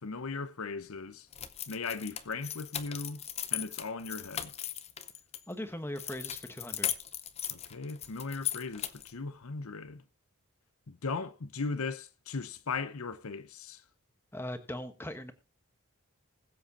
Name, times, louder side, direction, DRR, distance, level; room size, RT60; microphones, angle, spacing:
voice 1, 0.0-1.3 1.7-3.2 3.5-4.5 7.5-10.0 10.9-13.8, left 4 dB, 75° left, 0.8 m, -38 dB
sound 1, 1.3-5.4 6.0-9.2, left 10 dB, 30° left, 0.6 m, -38 dB
voice 2, 5.5-6.9 14.3-15.3, left 1 dB, 10° left, 1.1 m, -39 dB
20.5 x 7.9 x 2.8 m
head